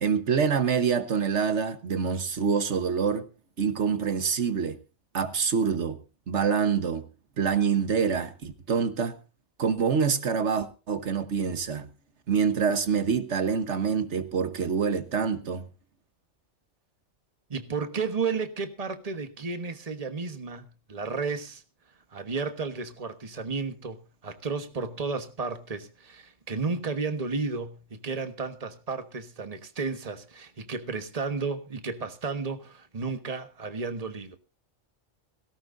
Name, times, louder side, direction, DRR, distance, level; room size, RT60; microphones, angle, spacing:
voice 1, 0.0-3.2 3.6-4.8 5.1-6.0 6.3-7.0 7.4-9.2 9.6-11.9 12.3-15.6, right 6 dB, 80° right, 1.5 m, -26 dB
voice 2, 17.5-21.6 22.1-34.4, right 4 dB, 35° right, 1.4 m, -33 dB
18.0 x 17.0 x 2.6 m
omnidirectional pair, 1.2 m